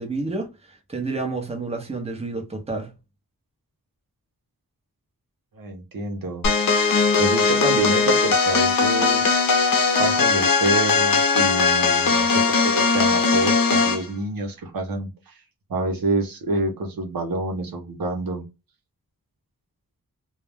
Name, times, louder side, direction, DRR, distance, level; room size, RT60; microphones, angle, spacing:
voice 1, 0.0-2.9, right 3 dB, 20° right, 0.7 m, -30 dB
voice 2, 5.5-6.5 7.2-9.3 10.0-15.3 15.7-18.4, right 2 dB, 85° right, 0.8 m, -27 dB
sound 1, 6.4-14.1, left 4 dB, 75° left, 0.6 m, -19 dB
2.3 x 2.1 x 3.3 m
wide cardioid pair, 95°, 34 cm